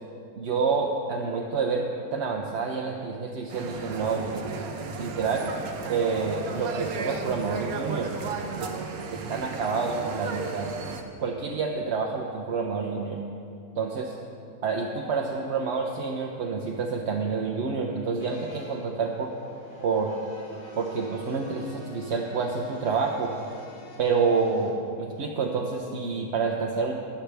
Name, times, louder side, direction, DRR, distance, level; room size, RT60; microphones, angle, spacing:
voice 1, 0.4-1.8 2.1-4.4 4.9-5.5 5.9-8.1 8.6-8.7 9.1-10.7 11.2-13.2 13.8-14.2 14.6-19.3 19.8-20.1 20.7-23.3 24.0-26.9, right 5 dB, 55° right, 0 dB, 0.9 m, -28 dB
sound 1, 3.5-11.0, right 4 dB, 70° right, 1.3 m, -34 dB
sound 2, 18.2-24.7, equal, 30° left, 2.3 m, -46 dB
21.5 x 7.3 x 3.4 m, 2.4 s
omnidirectional pair, 1.6 m